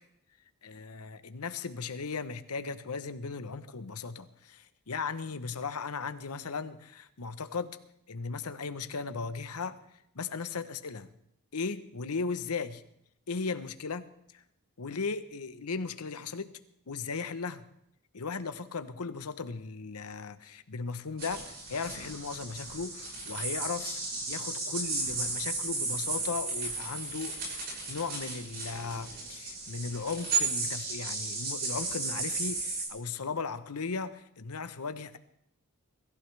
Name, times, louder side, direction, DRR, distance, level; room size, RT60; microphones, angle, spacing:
voice 1, 0.6-7.8 8.1-9.8 10.1-11.1 11.5-12.8 13.3-14.4 14.8-16.5 16.9-17.7 18.1-35.2, left 4 dB, 80° left, 12 dB, 0.9 m, -37 dB
sound 1, 21.2-32.9, right 3 dB, 45° right, 6.6 m, -34 dB
23.0 x 14.5 x 3.4 m, 0.77 s
head